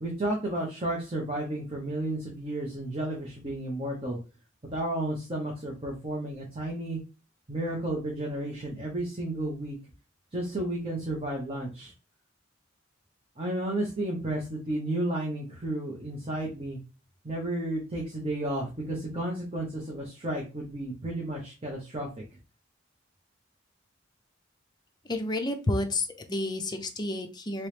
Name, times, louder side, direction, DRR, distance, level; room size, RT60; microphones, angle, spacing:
voice 1, 0.0-4.2 4.7-7.0 7.5-9.8 10.3-11.9 13.4-16.8 17.2-22.1, right 1 dB, 30° right, -2 dB, 0.8 m, -32 dB
voice 2, 25.1-27.7, left 2 dB, 20° left, 5 dB, 0.5 m, -30 dB
3.0 x 3.0 x 3.3 m, 0.32 s
head